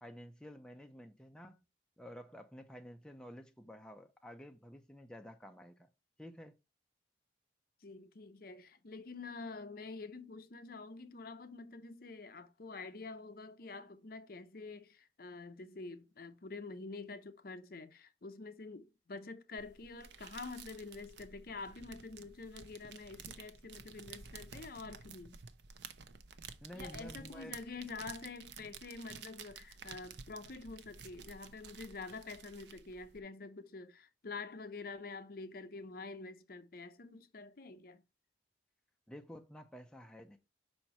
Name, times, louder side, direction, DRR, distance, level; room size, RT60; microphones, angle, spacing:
voice 1, 0.0-1.7 2.0-5.9 6.2-6.6 26.6-27.6 39.1-40.4, equal, 5° left, 0.5 m, -51 dB
voice 2, 7.8-25.4 26.7-38.0, left 3 dB, 55° left, 0.6 m, -47 dB
sound 1, 19.6-33.2, right 6 dB, 70° right, 0.7 m, -52 dB
5.6 x 4.4 x 4.3 m
head